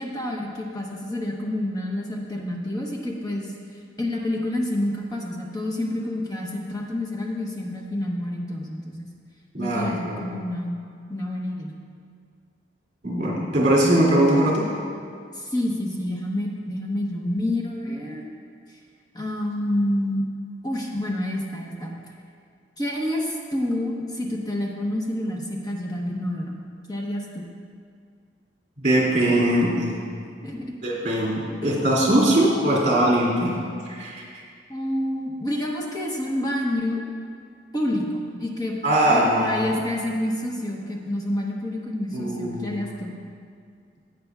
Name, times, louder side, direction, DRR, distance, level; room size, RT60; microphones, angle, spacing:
voice 1, 0.0-3.5 4.0-9.1 9.6-10.7 11.1-11.7 15.3-18.2 18.7-18.8 19.1-20.2 20.6-21.9 22.8-26.6 26.9-27.5 30.4-30.6 34.7-37.0 37.7-38.8 39.1-43.1, left 1 dB, 20° left, -2 dB, 1.0 m, -28 dB
voice 2, 9.5-10.2 13.0-14.7 28.8-30.0 30.8-33.6 33.9-34.2 38.8-39.6 42.1-42.8, right 1 dB, 45° right, -6 dB, 2.3 m, -21 dB
15.5 x 8.5 x 2.4 m, 2.2 s
head